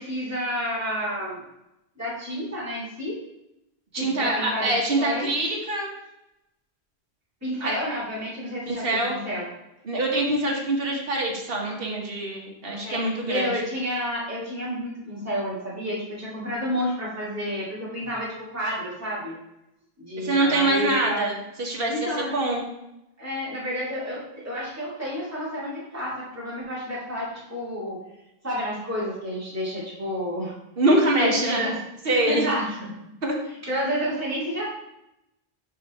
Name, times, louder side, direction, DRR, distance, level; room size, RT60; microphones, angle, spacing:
voice 1, 0.0-1.4 2.0-3.2 3.9-5.3 7.4-9.5 12.7-19.3 20.0-21.3 21.9-22.3 23.2-28.0 28.4-30.5 31.2-31.7 32.0-32.9 33.7-34.6, equal, 15° right, -8 dB, 2.4 m, -30 dB
voice 2, 3.9-5.9 7.6-7.7 8.7-9.2 9.8-13.5 20.2-22.6 30.8-31.6 32.0-32.5 33.2-33.3, right 1 dB, 60° right, -1 dB, 1.6 m, -24 dB
5.5 x 5.3 x 4.2 m, 0.88 s
omnidirectional pair, 1.1 m